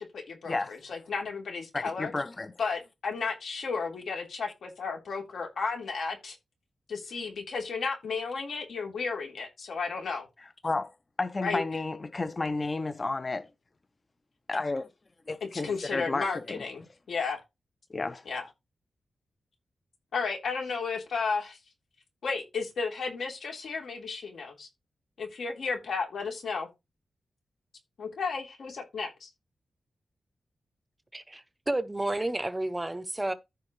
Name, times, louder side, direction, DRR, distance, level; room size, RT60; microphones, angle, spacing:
voice 1, 0.0-2.1 2.6-6.4 6.9-10.3 11.4-11.6 15.4-16.8 17.1-17.4 18.2-18.4 20.1-21.6 22.2-24.7 25.2-26.7 28.0-29.3, left 4 dB, 75° left, 3.4 m, -33 dB
voice 2, 1.7-2.5 10.6-10.9 11.2-13.5 14.5-14.9 15.3-16.6 17.9-18.2, left 3 dB, 30° left, 0.5 m, -31 dB
voice 3, 31.1-33.3, right 1 dB, 15° right, 0.6 m, -31 dB
14.0 x 4.8 x 3.2 m
wide cardioid pair, 140°, 0 cm